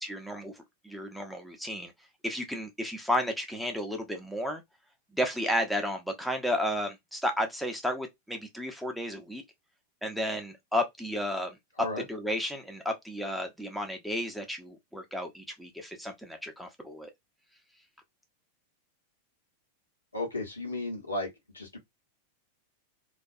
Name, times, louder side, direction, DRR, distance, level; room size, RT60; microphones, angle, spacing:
voice 1, 0.0-1.9 2.2-4.6 5.1-9.4 10.0-11.6 12.1-17.1, equal, ahead, 0.6 m, -33 dB
voice 2, 20.1-21.8, left 2 dB, 80° left, 0.9 m, -34 dB
2.3 x 2.2 x 2.6 m
figure-of-eight pair, 90°, 0 cm